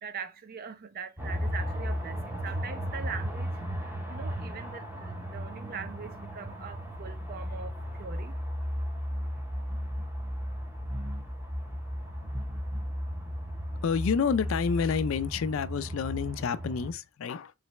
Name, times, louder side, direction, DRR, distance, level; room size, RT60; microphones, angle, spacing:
voice 1, 0.0-8.3, right 6 dB, 45° right, 0.5 m, -42 dB
sound 1, 1.2-16.9, equal, 10° right, 0.7 m, -35 dB
voice 2, 13.8-17.5, left 6 dB, 75° left, 0.4 m, -29 dB
3.9 x 3.3 x 2.9 m
head